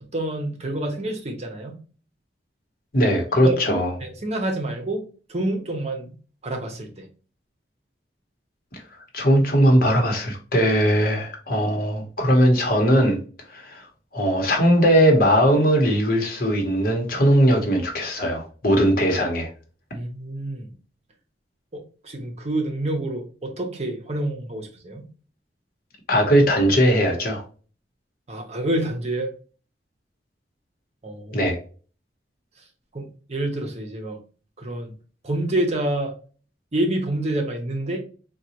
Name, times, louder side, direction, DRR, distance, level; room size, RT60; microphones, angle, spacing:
voice 1, 0.0-1.8 3.4-5.0 5.3-6.1 6.4-7.1 19.9-20.7 21.7-25.1 28.3-29.3 31.0-31.5 32.9-34.2 34.6-34.9 35.2-36.1 36.7-38.0, right 1 dB, 40° right, 0.8 m, -28 dB
voice 2, 2.9-3.9 9.1-13.2 13.5-13.9 14.1-19.5 26.1-27.4 31.3-31.6, equal, 55° left, 1.0 m, -19 dB
3.9 x 2.3 x 2.8 m
head